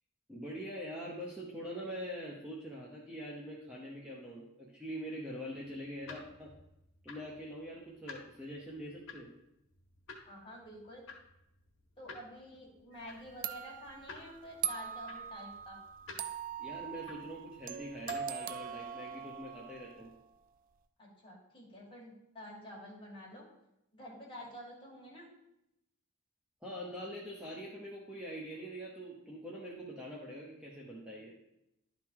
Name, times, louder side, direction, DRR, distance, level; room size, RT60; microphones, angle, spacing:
voice 1, 0.3-6.5 7.0-9.3 16.6-20.1 26.6-31.3, equal, 5° right, -4 dB, 0.9 m, -44 dB
sound 1, 5.7-18.5, left 4 dB, 65° left, 1.5 m, -54 dB
voice 2, 10.3-11.1 12.0-15.8 21.0-23.5 23.9-25.3, equal, 25° left, -3 dB, 2.2 m, -49 dB
sound 2, 12.9-13.1 13.4-20.2, right 8 dB, 40° right, 0.3 m, -41 dB
11.0 x 3.8 x 4.7 m, 0.86 s
head